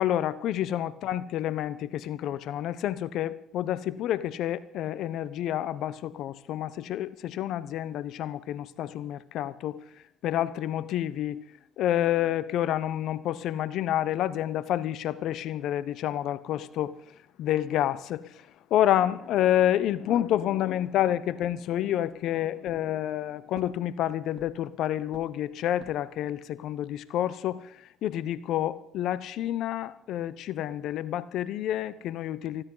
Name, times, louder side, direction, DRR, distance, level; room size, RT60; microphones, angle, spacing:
voice 1, 0.0-9.8 10.2-11.4 11.8-16.9 17.4-32.6, left 12 dB, 70° left, 0.9 m, -29 dB
sound 1, 21.4-22.2 22.6-23.2 23.5-24.8 25.1-26.2, right 6 dB, 55° right, 2.4 m, -51 dB
20.0 x 15.5 x 4.0 m
supercardioid pair, 65°, 0 cm